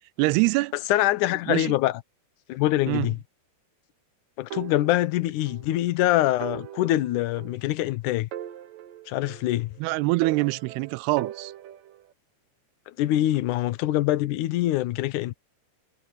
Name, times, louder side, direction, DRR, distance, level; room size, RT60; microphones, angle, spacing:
voice 1, 0.2-0.8 1.5-1.8 2.9-3.1 9.8-11.5, right 22 dB, 85° right, 2.6 m, -24 dB
voice 2, 0.9-2.0 2.5-3.2 4.4-8.3 9.1-9.7 13.0-15.3, left 15 dB, 75° left, 1.9 m, -24 dB
sound 1, 4.5-5.7 6.0-6.1 6.4-7.9 8.3-9.8 10.2-12.1, right 11 dB, 65° right, 2.7 m, -40 dB
omnidirectional pair, 4.7 m